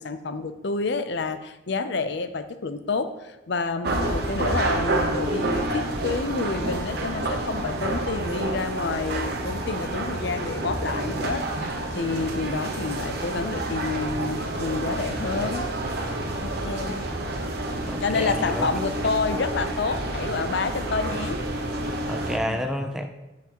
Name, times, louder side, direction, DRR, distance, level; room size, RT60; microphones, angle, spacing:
voice 1, 0.0-11.5 11.9-15.7 16.4-17.1 18.0-21.4 22.5-22.6, left 4 dB, 55° left, 11 dB, 0.5 m, -29 dB
sound 1, 3.8-22.4, right 1 dB, 50° right, 1.0 m, -29 dB
voice 2, 17.8-18.7 22.1-23.1, equal, ahead, 5 dB, 0.4 m, -30 dB
14.0 x 5.9 x 3.0 m, 1.0 s
head